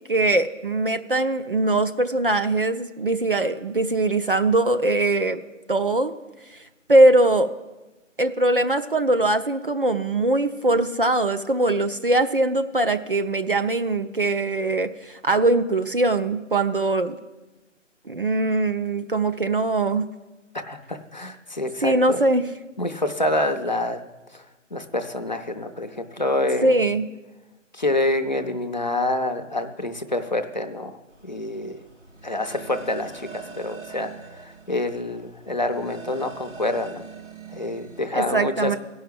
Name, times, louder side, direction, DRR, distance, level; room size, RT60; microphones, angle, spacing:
voice 1, 0.1-5.4 5.7-6.1 6.9-7.5 8.2-17.2 18.1-20.1 21.8-22.4 26.6-27.1 38.1-38.8, right 2 dB, 45° right, 9 dB, 0.4 m, -21 dB
voice 2, 20.5-22.2 22.8-24.0 24.3-24.4 24.7-26.8 27.7-31.8 32.2-37.0 37.5-38.8, left 1 dB, 35° left, 6 dB, 0.5 m, -27 dB
sound 1, 31.1-38.0, right 6 dB, 75° right, 4.1 m, -43 dB
16.5 x 5.6 x 7.7 m, 1.1 s
hypercardioid pair, 175°, 39 cm